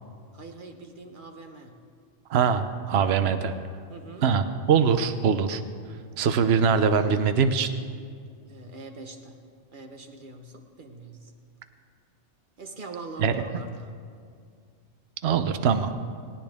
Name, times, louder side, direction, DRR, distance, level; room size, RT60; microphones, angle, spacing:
voice 1, 0.3-1.8 3.9-4.3 8.4-9.4 9.7-11.3 12.6-13.9, right 3 dB, 45° right, 4 dB, 1.3 m, -43 dB
voice 2, 2.3-3.5 4.2-5.6 6.2-7.7 13.2-13.4 15.2-15.9, right 6 dB, 65° right, 9 dB, 1.0 m, -22 dB
18.5 x 16.5 x 3.5 m, 2.2 s
omnidirectional pair, 1.2 m